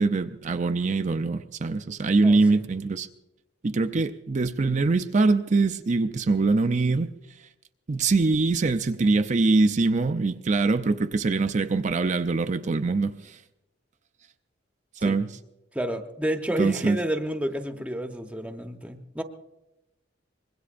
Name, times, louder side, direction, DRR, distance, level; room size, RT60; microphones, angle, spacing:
voice 1, 0.0-3.1 3.6-7.1 7.9-13.4 15.0-15.3 16.6-17.0, right 3 dB, 40° right, 8 dB, 0.5 m, -23 dB
voice 2, 2.2-2.6 15.0-15.2 15.7-19.2, equal, 5° right, 5 dB, 0.9 m, -30 dB
24.5 x 21.5 x 2.5 m, 0.96 s
head